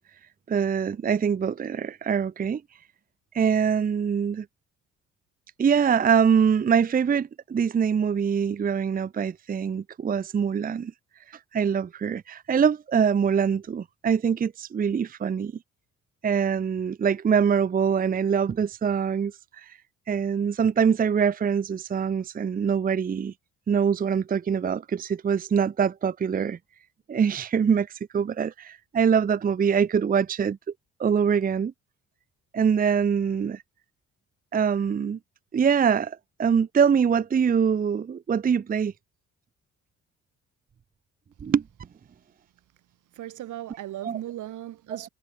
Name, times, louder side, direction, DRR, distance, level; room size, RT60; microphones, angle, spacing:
voice 1, 0.5-2.6 3.3-4.5 5.6-10.9 11.5-15.5 16.2-19.8 20.1-23.3 23.7-26.6 27.1-27.9 28.1-30.6 31.0-31.7 32.5-33.6 34.5-35.2 35.5-38.9 41.4-41.6 44.0-44.2 45.0-45.1, right 7 dB, 30° right, 0.6 m, -24 dB
voice 2, 43.2-45.1, right 13 dB, 80° right, 3.9 m, -37 dB
cardioid pair, 90°, 30 cm